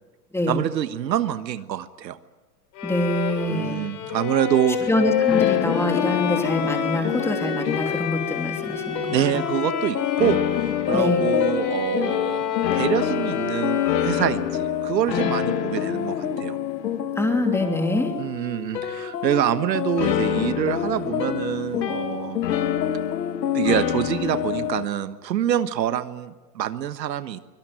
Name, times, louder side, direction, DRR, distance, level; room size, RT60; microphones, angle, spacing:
voice 1, 0.5-2.2 3.5-4.8 9.1-12.4 12.7-16.6 18.2-22.4 23.5-27.4, right 10 dB, 85° right, 12 dB, 1.4 m, -26 dB
Bowed string instrument, 2.8-14.6, left 8 dB, 40° left, 5.0 m, -27 dB
voice 2, 2.8-3.8 4.9-9.4 10.9-11.2 17.2-18.1, left 1 dB, 5° left, 4 dB, 2.9 m, -25 dB
sound 1, 5.3-24.8, left 9 dB, 80° left, 2.1 m, -27 dB
24.0 x 18.0 x 9.1 m, 1.2 s
hypercardioid pair, 130°, 49 cm